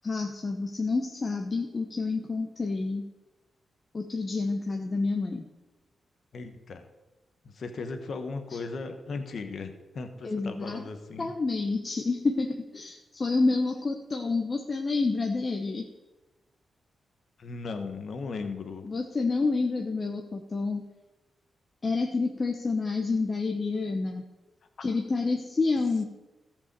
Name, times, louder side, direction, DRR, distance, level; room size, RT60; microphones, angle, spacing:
voice 1, 0.0-3.0 3.9-5.4 10.2-10.8 11.2-15.8 18.8-20.8 21.8-24.2 24.8-26.0, left 3 dB, 40° left, 2 dB, 1.1 m, -28 dB
voice 2, 6.3-6.9 7.4-11.3 17.4-18.9, left 4 dB, 65° left, 7 dB, 1.3 m, -37 dB
14.0 x 5.3 x 6.9 m, 1.1 s
cardioid pair, 60°, 0 cm